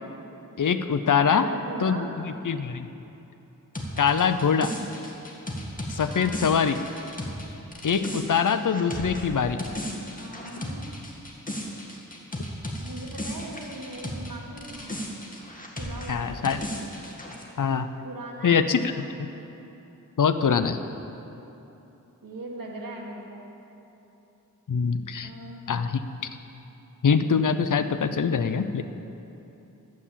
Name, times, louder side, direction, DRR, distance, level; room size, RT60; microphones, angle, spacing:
voice 1, 0.6-1.4 1.8-2.0 2.4-2.9 4.0-4.7 5.9-6.8 7.8-9.6 16.1-16.6 17.6-17.9 18.4-18.9 19.2-19.3 20.2-20.8 24.7-25.3 25.7-26.0 27.0-28.8, left 6 dB, 70° left, 10 dB, 0.6 m, -23 dB
voice 2, 1.2-2.1 6.1-6.4 10.2-10.9 12.8-15.0 15.8-16.5 18.0-19.1 22.2-23.5 25.2-25.7, right 2 dB, 85° right, -1 dB, 1.9 m, -39 dB
sound 1, 3.7-14.3 14.6-17.4, equal, 25° left, 1.7 m, -35 dB
12.0 x 8.5 x 7.4 m, 3.0 s
wide cardioid pair, 70°, 33 cm